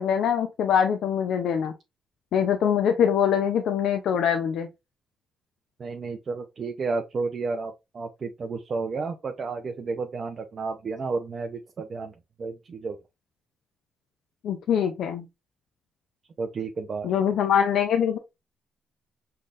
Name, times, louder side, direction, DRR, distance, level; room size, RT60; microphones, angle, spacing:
voice 1, 0.0-1.7 2.3-4.7 14.4-15.3 17.0-18.2, left 8 dB, 75° left, 0.6 m, -23 dB
voice 2, 5.8-13.0 16.4-17.1, right 4 dB, 45° right, 0.7 m, -32 dB
5.6 x 3.3 x 2.5 m
cardioid pair, 90°, 0 cm